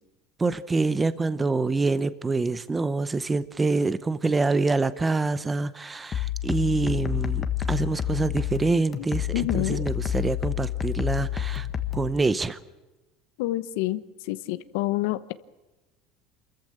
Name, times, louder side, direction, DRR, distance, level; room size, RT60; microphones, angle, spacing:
voice 1, 0.4-11.7 11.9-12.6, right 3 dB, 10° right, 15 dB, 0.7 m, -26 dB
sound 1, 6.1-12.1, left 10 dB, 25° left, 1.5 m, -29 dB
voice 2, 9.3-9.8 13.4-15.3, left 17 dB, 80° left, 13 dB, 1.0 m, -28 dB
28.0 x 14.5 x 8.8 m, 1.1 s
cardioid pair, 165°, 0 cm